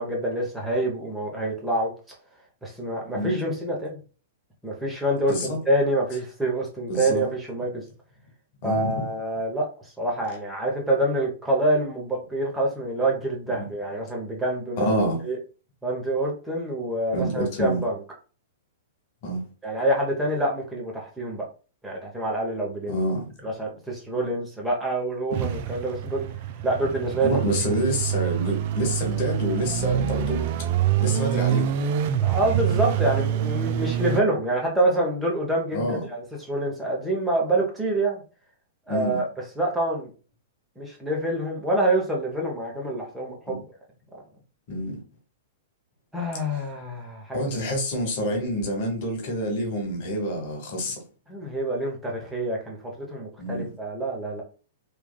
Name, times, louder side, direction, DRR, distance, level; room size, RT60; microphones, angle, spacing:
voice 1, 0.0-1.9 2.6-4.0 4.6-7.8 8.6-15.4 15.8-18.0 19.6-21.4 21.8-22.9 23.4-26.3 26.6-27.3 27.7-27.8 32.2-38.2 38.9-39.3 39.6-40.1 40.8-43.6 46.1-47.4 51.3-54.4, right 1 dB, 10° right, 0.8 m, -26 dB
voice 2, 5.3-5.6 6.9-7.2 8.6-9.1 13.5-13.7 14.8-15.2 17.1-17.8 19.2-19.4 22.9-23.3 27.2-30.5 31.0-31.7 35.7-36.0 38.9-39.2 43.5-43.6 44.7-45.0 47.3-51.0 53.4-53.7, equal, 50° left, 1.1 m, -27 dB
sound 1, 25.3-34.2, right 10 dB, 50° right, 0.3 m, -26 dB
3.1 x 2.2 x 2.2 m
hypercardioid pair, 120°, 0 cm